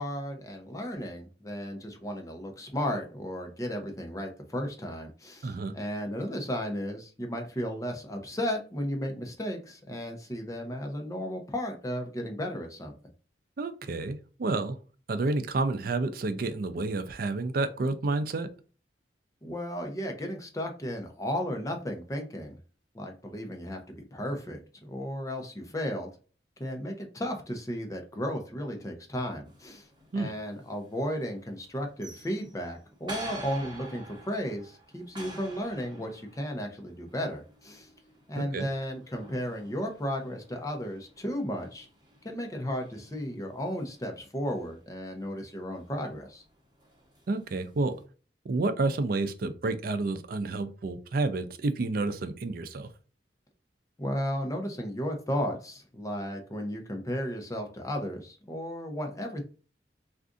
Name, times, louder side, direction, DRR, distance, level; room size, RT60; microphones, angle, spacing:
voice 1, 0.0-12.9 19.4-22.6 22.9-26.1 26.6-29.9 30.1-37.9 38.3-41.9 42.2-46.4 54.0-59.4, equal, 20° left, 3 dB, 0.6 m, -34 dB
voice 2, 5.4-5.7 13.6-14.8 15.1-18.5 30.1-30.3 38.4-38.7 47.3-47.9 48.4-52.9, right 3 dB, 55° right, 10 dB, 0.4 m, -30 dB
sound 1, 29.4-48.0, right 2 dB, 25° right, 1.0 m, -49 dB
2.5 x 2.4 x 3.6 m, 0.37 s
head